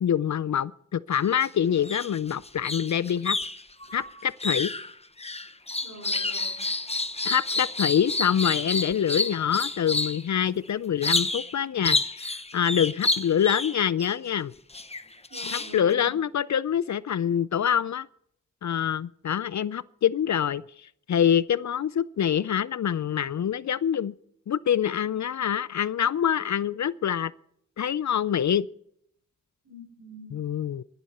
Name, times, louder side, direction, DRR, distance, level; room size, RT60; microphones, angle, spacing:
voice 1, 0.0-3.4 3.9-4.7 7.2-14.5 15.5-18.1 18.6-20.6 21.1-24.1 24.5-27.3 27.8-28.7 30.3-30.8, left 9 dB, 65° left, 19 dB, 0.5 m, -25 dB
sound 1, 1.1-1.5 1.8-10.2 11.0-11.5 11.8-14.1 14.7-15.9, left 2 dB, 20° left, 0.9 m, -29 dB
voice 2, 5.8-6.6 15.3-16.1 29.6-30.3, equal, 60° right, 0 dB, 5.6 m, -45 dB
20.5 x 11.0 x 4.2 m, 0.70 s
wide cardioid pair, 90°, 31 cm